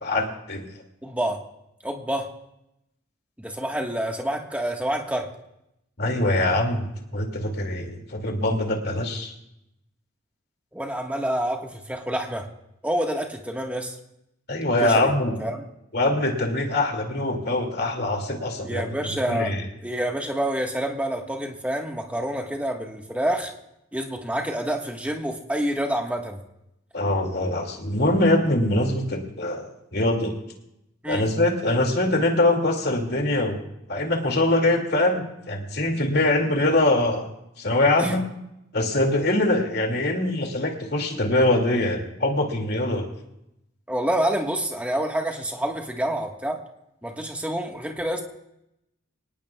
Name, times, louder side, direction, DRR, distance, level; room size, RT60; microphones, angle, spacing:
voice 1, 0.0-0.7 6.0-6.9 7.1-9.3 14.5-15.4 15.9-19.0 19.3-19.6 26.9-30.3 31.1-33.6 33.9-37.3 37.6-38.2 38.7-43.1, left 1 dB, 50° left, 2 dB, 2.4 m, -23 dB
voice 2, 1.0-1.4 1.8-2.3 3.4-5.3 10.7-12.5 12.8-14.0 14.8-15.1 15.4-15.6 18.6-19.5 19.8-23.5 23.9-26.4 31.0-31.3 38.0-38.2 43.9-46.6 47.0-48.2, right 1 dB, 5° right, 2 dB, 1.5 m, -27 dB
25.0 x 18.5 x 2.4 m, 0.84 s
head